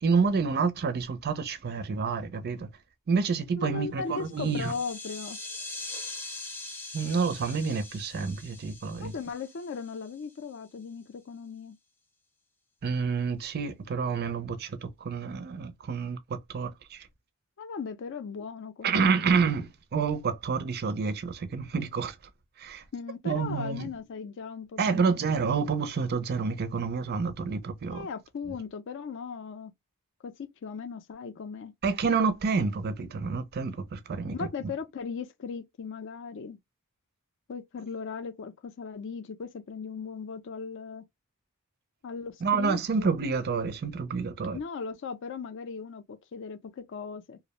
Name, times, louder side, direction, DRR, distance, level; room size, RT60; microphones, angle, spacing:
voice 1, 0.0-2.7 3.1-4.7 6.9-9.1 12.8-17.1 18.8-22.2 22.6-22.8 23.2-23.9 24.8-28.1 31.8-34.5 42.4-44.6, right 5 dB, 50° right, 0.4 m, -28 dB
voice 2, 3.6-5.4 9.0-11.8 17.6-19.4 22.9-25.2 27.9-29.7 30.2-31.7 34.3-36.6 37.5-41.0 42.0-43.1 44.5-47.4, left 5 dB, 60° left, 0.4 m, -38 dB
sound 1, 4.2-10.3, left 2 dB, 10° left, 0.5 m, -42 dB
2.4 x 2.0 x 2.8 m
head